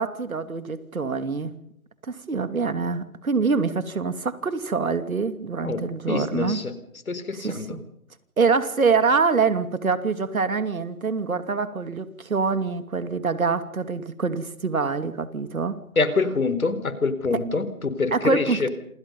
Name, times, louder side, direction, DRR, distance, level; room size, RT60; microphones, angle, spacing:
voice 1, 0.0-1.5 2.0-6.6 7.3-7.8 8.4-15.8 17.3-17.4 18.1-18.7, right 4 dB, 65° right, 11 dB, 2.8 m, -25 dB
voice 2, 5.6-6.7 7.1-7.8 16.0-18.7, left 4 dB, 70° left, 12 dB, 4.4 m, -25 dB
28.0 x 26.5 x 5.5 m, 0.69 s
hypercardioid pair, 170°, 44 cm